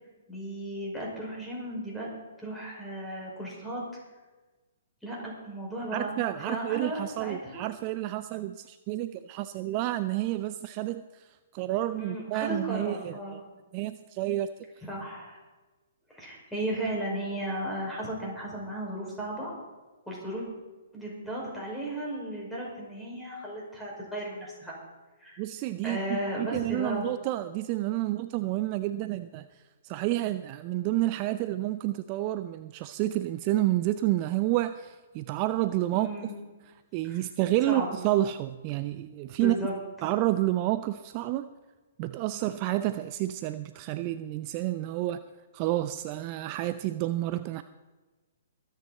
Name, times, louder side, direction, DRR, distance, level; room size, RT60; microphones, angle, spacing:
voice 1, 0.3-2.1 2.4-3.8 5.0-7.6 12.0-13.4 14.8-15.4 16.1-19.5 20.1-20.4 20.9-24.8 25.2-25.4 25.8-27.1 35.9-36.3 37.0-37.2 37.6-37.9 39.4-39.7, right 1 dB, 5° left, -4 dB, 5.2 m, -35 dB
voice 2, 5.9-13.4 13.7-14.5 25.4-29.5 29.8-36.1 36.9-39.6 40.0-41.5 42.0-45.2 45.5-47.6, right 15 dB, 35° right, 11 dB, 0.5 m, -29 dB
23.5 x 9.2 x 4.1 m, 1.2 s
figure-of-eight pair, 125°, 0 cm